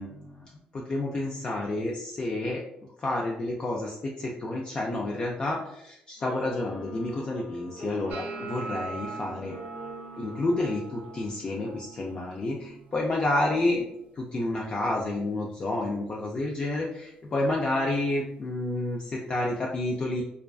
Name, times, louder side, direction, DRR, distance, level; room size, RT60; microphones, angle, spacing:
voice 1, 0.0-2.6 3.0-9.6 10.2-13.8 14.1-20.2, left 2 dB, 35° left, -2 dB, 0.3 m, -30 dB
sound 1, 6.2-11.7, right 1 dB, 90° left, 0.8 m, -43 dB
sound 2, 8.1-14.2 14.5-15.0 15.3-15.9 16.5-16.7 18.5-18.6, right 4 dB, 85° right, 0.4 m, -43 dB
2.4 x 2.2 x 2.2 m, 0.81 s
cardioid pair, 100°, 3 cm